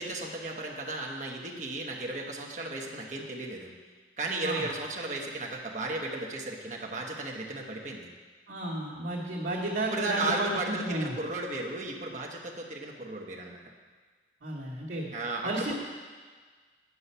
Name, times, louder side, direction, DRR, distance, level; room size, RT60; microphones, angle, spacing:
voice 1, 0.0-3.7 4.2-8.1 9.9-13.6 15.1-15.7, right 2 dB, 40° right, -1 dB, 1.1 m, -35 dB
voice 2, 8.5-11.1 14.4-15.1 15.4-15.7, right 1 dB, 80° right, -8 dB, 1.5 m, -32 dB
9.7 x 5.5 x 5.6 m, 1.5 s
head